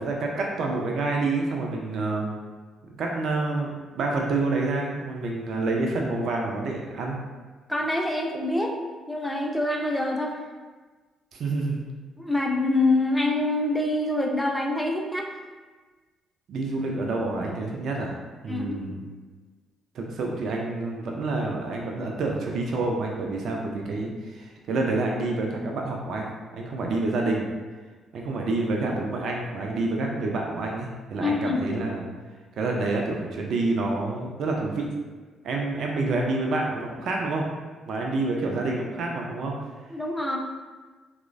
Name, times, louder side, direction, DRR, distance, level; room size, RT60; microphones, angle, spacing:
voice 1, 0.0-2.3 2.8-3.7 3.9-7.2 11.3-11.9 16.5-18.2 18.4-19.0 19.9-27.5 28.1-32.0 32.6-34.9 35.4-37.5 37.9-39.5, right 3 dB, 60° right, 0 dB, 0.3 m, -28 dB
voice 2, 7.7-8.7 9.1-10.4 12.2-15.3 18.5-18.8 31.2-31.6 39.9-40.4, left 2 dB, 5° left, 1 dB, 0.5 m, -25 dB
3.0 x 2.0 x 2.4 m, 1.3 s
hypercardioid pair, 45°, 0 cm